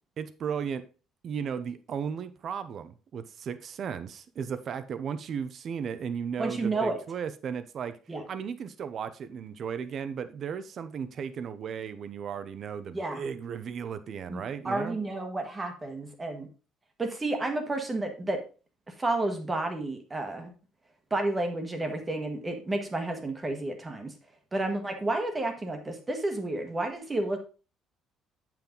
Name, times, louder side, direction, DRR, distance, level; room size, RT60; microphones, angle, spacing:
voice 1, 0.2-0.9 1.2-8.0 8.3-15.0, right 7 dB, 40° right, 0.7 m, -35 dB
voice 2, 6.4-7.0 8.1-8.2 12.9-13.2 14.3-16.5 17.0-18.4 18.9-20.5 21.1-24.1 24.5-27.4, right 2 dB, 15° right, 1.3 m, -31 dB
8.7 x 5.8 x 3.8 m
cardioid pair, 170°, 0 cm